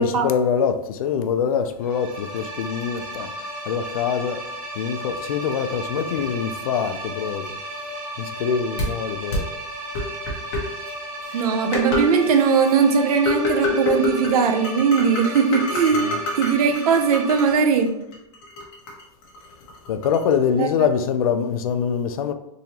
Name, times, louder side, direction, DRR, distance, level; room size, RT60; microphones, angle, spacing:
voice 1, 0.0-3.3 3.7-4.4 4.8-7.5 8.2-9.5 15.9-16.2 19.9-22.3, left 7 dB, 70° left, 0.4 m, -24 dB
sound 1, 1.8-17.5, right 1 dB, 40° right, 1.3 m, -34 dB
sound 2, 8.8-8.9 9.3-9.4 9.9-10.6 11.3-11.4 11.7-12.0 12.3-12.7 13.3-14.3 14.6-17.5 17.8-20.3, left 3 dB, 40° left, 0.9 m, -27 dB
voice 2, 11.3-16.0 16.3-17.9 20.6-20.7, right 6 dB, 80° right, 0.6 m, -19 dB
3.7 x 2.9 x 2.8 m
supercardioid pair, 170°, 19 cm